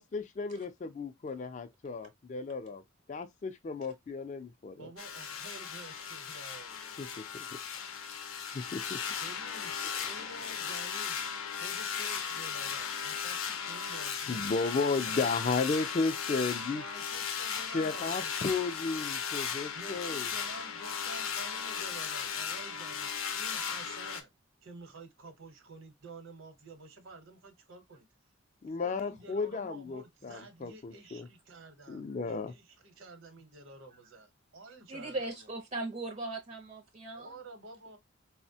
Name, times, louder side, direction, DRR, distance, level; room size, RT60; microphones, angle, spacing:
voice 1, 0.0-0.7 1.0-2.8 3.1-4.9 7.0-7.1 7.3-7.5 8.5-9.0 9.9-10.1 14.3-16.8 17.7-20.3 28.6-31.3 31.9-32.5, left 4 dB, 35° left, 0.3 m, -34 dB
voice 2, 4.8-7.2 9.2-11.2 11.5-14.5 14.8-15.3 16.7-18.5 19.7-24.3 24.6-28.1 28.6-35.5 37.1-38.0, right 2 dB, 80° right, 0.8 m, -50 dB
sound 1, 5.0-24.2, left 7 dB, 90° left, 0.6 m, -36 dB
voice 3, 34.9-37.3, right 2 dB, 35° right, 0.5 m, -38 dB
4.0 x 2.1 x 2.6 m
head